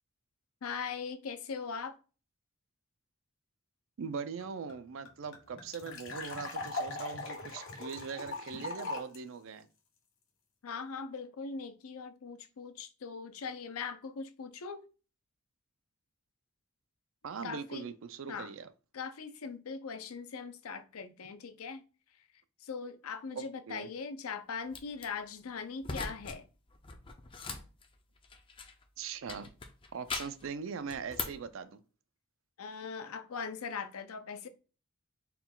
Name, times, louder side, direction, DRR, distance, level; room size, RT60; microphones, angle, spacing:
voice 1, 0.6-2.0 10.6-14.9 17.4-17.8 18.3-18.5 18.9-21.8 22.6-26.5 32.6-34.5, left 5 dB, 80° left, 0.5 m, -40 dB
voice 2, 4.0-9.7 17.2-18.7 23.3-23.9 29.0-29.5 29.9-31.8, right 6 dB, 65° right, 0.4 m, -41 dB
sound 1, 4.4-4.5 4.7-4.8 5.0-9.2, left 3 dB, 65° left, 1.4 m, -40 dB
sound 2, 24.7-25.1 25.8-26.4 26.7-28.8 29.3-30.5 30.9-31.5, left 4 dB, 25° left, 0.4 m, -41 dB
4.4 x 2.3 x 3.7 m
head